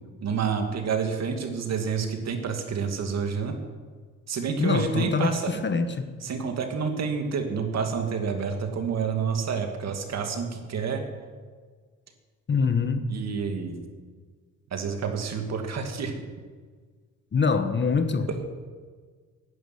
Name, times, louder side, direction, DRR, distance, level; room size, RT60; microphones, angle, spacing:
voice 1, 0.2-3.5 4.3-5.7 6.2-11.0 13.1-13.8 14.7-16.2 18.3-18.4, right 6 dB, 60° right, 5 dB, 2.4 m, -29 dB
voice 2, 4.6-6.1 12.5-13.0 17.3-18.5, left 5 dB, 35° left, 9 dB, 1.4 m, -25 dB
11.0 x 10.5 x 9.7 m, 1.5 s
cardioid pair, 90°, 30 cm